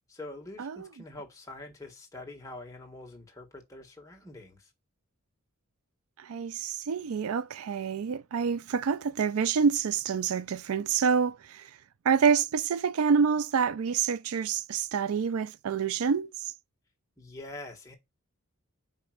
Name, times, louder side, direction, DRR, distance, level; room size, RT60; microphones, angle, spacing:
voice 1, 0.1-4.7 17.2-17.9, left 2 dB, 15° left, 1.6 m, -45 dB
voice 2, 6.2-11.8 12.0-16.5, right 6 dB, 75° right, 0.4 m, -27 dB
5.5 x 5.1 x 4.9 m
head